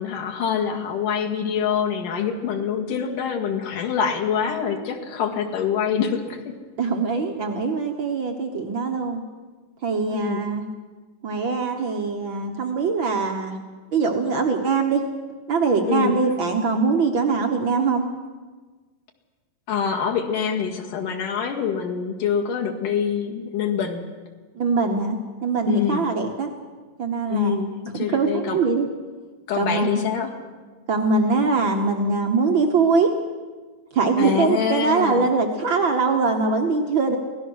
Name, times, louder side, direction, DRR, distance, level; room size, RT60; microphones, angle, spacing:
voice 1, 0.0-6.6 10.1-10.4 15.9-16.2 19.7-24.0 25.7-26.1 27.3-28.6 29.5-30.3 34.2-35.3, left 7 dB, 70° left, 1 dB, 3.4 m, -25 dB
voice 2, 6.8-9.2 9.8-10.6 11.2-13.6 13.9-15.0 15.5-18.1 24.6-26.5 27.0-27.6 27.9-28.9 29.6-30.0 30.9-33.1 33.9-37.2, right 4 dB, 75° right, 3 dB, 1.1 m, -22 dB
24.0 x 17.5 x 6.4 m, 1.4 s
omnidirectional pair, 4.0 m